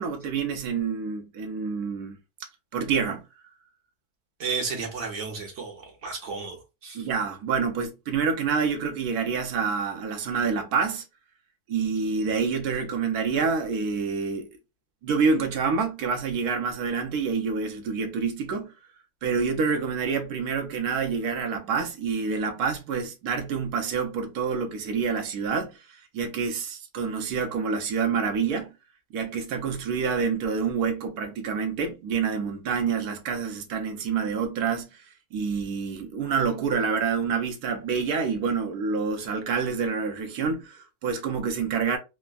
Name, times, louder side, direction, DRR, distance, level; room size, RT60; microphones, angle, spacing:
voice 1, 0.0-2.2 2.7-3.2 6.9-11.0 11.7-14.5 15.0-18.7 19.2-28.7 29.1-42.0, right 5 dB, 75° right, 1.1 m, -27 dB
voice 2, 4.4-7.1, right 5 dB, 55° right, 1.0 m, -33 dB
3.4 x 2.0 x 2.3 m
omnidirectional pair, 1.7 m